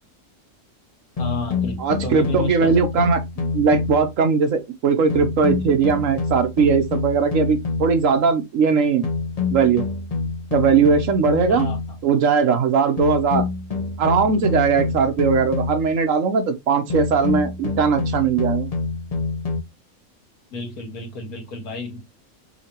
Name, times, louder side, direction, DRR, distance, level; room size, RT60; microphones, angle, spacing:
voice 1, 1.2-2.7 11.5-11.8 20.5-22.0, left 3 dB, 85° left, 1.8 m, -32 dB
sound 1, 1.2-4.2 5.1-8.1 9.0-12.0 13.0-16.0 16.9-19.6, left 4 dB, 30° left, 0.8 m, -26 dB
voice 2, 1.8-9.1 9.5-9.8 10.5-11.7 12.0-13.4 14.0-18.7, right 5 dB, 65° right, 1.1 m, -19 dB
5.6 x 2.8 x 2.8 m
omnidirectional pair, 1.5 m